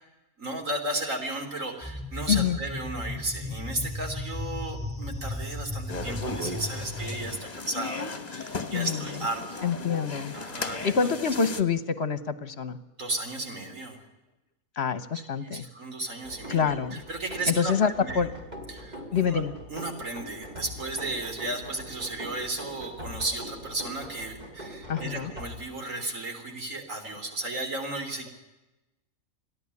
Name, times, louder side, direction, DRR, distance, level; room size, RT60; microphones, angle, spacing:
voice 1, 0.4-9.7 10.3-11.1 13.0-14.0 15.1-16.7 17.1-18.3 18.7-19.4 19.7-28.3, right 2 dB, 70° right, 4 dB, 4.0 m, -34 dB
sound 1, 1.8-7.3, left 2 dB, 10° right, 7.5 m, -35 dB
sound 2, 5.9-11.6, left 3 dB, 30° left, 1.4 m, -36 dB
voice 2, 8.7-9.2 9.6-12.8 14.8-15.7 16.5-17.0 17.5-18.3 19.1-19.5 24.9-25.3, left 6 dB, 55° left, 14 dB, 1.2 m, -27 dB
sound 3, 16.2-25.6, equal, 30° right, 3.2 m, -42 dB
29.0 x 11.0 x 9.6 m, 1.0 s
omnidirectional pair, 1.4 m